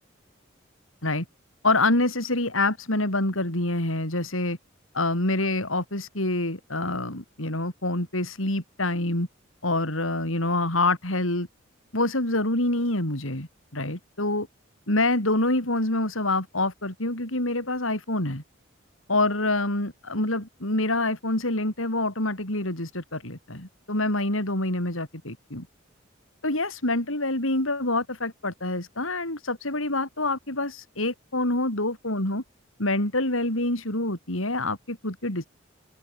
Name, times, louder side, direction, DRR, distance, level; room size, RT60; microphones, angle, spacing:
voice 1, 1.6-4.6 4.9-9.3 9.6-11.5 11.9-14.5 14.9-18.4 19.1-25.7 26.4-32.4 32.8-35.5, left 2 dB, 90° left, 7.1 m, -26 dB
head